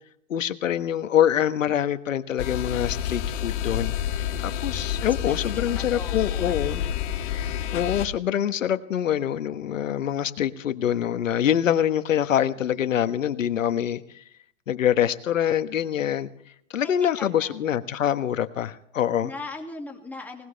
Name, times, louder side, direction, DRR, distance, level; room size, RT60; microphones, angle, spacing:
voice 1, 0.3-3.9 4.4-6.8 7.7-14.2 14.7-16.3 16.7-19.3, left 10 dB, 85° left, 11 dB, 1.4 m, -25 dB
sound 1, 2.4-8.1, left 10 dB, 65° left, 2.1 m, -29 dB
voice 2, 5.3-6.9 16.8-17.8 19.2-20.5, left 3 dB, 5° left, 1 dB, 2.4 m, -40 dB
20.5 x 19.0 x 3.4 m, 0.67 s
hypercardioid pair, 140°, 38 cm